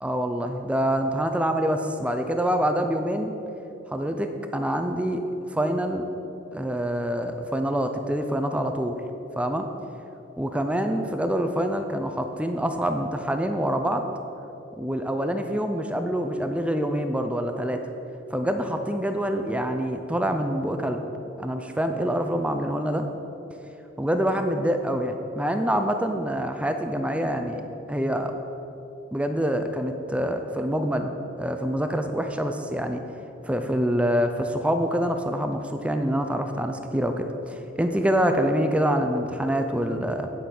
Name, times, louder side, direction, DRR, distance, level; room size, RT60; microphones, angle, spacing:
voice 1, 0.0-3.3 3.9-5.2 5.5-6.0 6.5-9.0 9.4-9.7 10.4-14.0 14.8-17.8 18.3-21.0 21.4-23.1 24.0-28.3 29.1-31.1 31.4-33.0 33.4-40.3, equal, 5° right, 6 dB, 0.5 m, -26 dB
9.4 x 8.3 x 6.0 m, 3.0 s
head